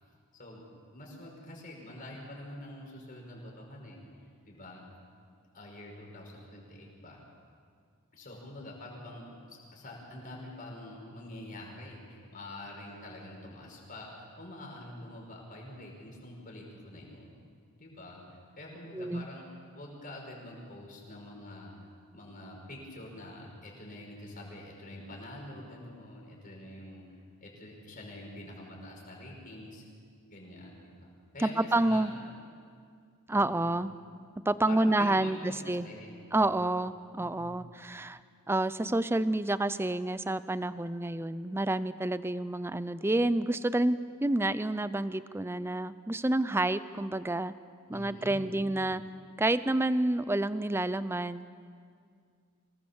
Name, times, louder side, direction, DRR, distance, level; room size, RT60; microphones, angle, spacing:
voice 1, 0.9-4.9 5.5-7.2 8.1-17.3 17.8-19.5 19.7-27.0 27.4-29.8 30.3-32.3 33.3-33.8 34.7-36.4 36.8-37.6 47.9-48.7, left 1 dB, 40° left, -1 dB, 5.5 m, -46 dB
voice 2, 18.9-19.2 31.4-32.1 33.3-33.9 34.5-35.9 36.3-38.2 38.5-47.5 47.9-49.0 49.4-51.5, right 2 dB, 10° right, 15 dB, 0.5 m, -29 dB
25.0 x 19.0 x 7.2 m, 2.2 s
head